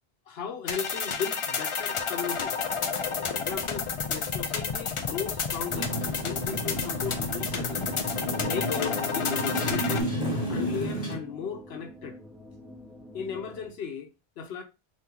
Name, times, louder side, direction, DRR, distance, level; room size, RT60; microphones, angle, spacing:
voice 1, 0.3-2.6 3.3-7.8 8.4-10.1 10.5-12.2 13.1-14.6, left 7 dB, 75° left, 0.9 m, -36 dB
sound 1, 0.7-10.0, left 5 dB, 55° left, 0.3 m, -31 dB
Motorcycle, 5.7-11.2, equal, 35° left, 1.2 m, -31 dB
sound 2, 7.8-13.7, left 1 dB, ahead, 0.5 m, -47 dB
2.8 x 2.7 x 3.7 m
omnidirectional pair, 1.1 m